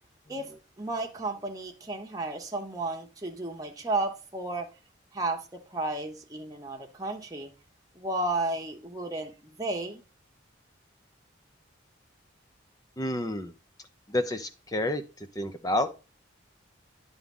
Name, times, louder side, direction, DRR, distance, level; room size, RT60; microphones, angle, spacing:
voice 1, 0.8-4.7 5.1-7.5 7.9-10.0, right 2 dB, 20° right, 1.0 m, -33 dB
voice 2, 13.0-13.5 14.1-15.0 15.4-15.9, left 1 dB, 20° left, 0.6 m, -29 dB
9.8 x 3.6 x 5.3 m
head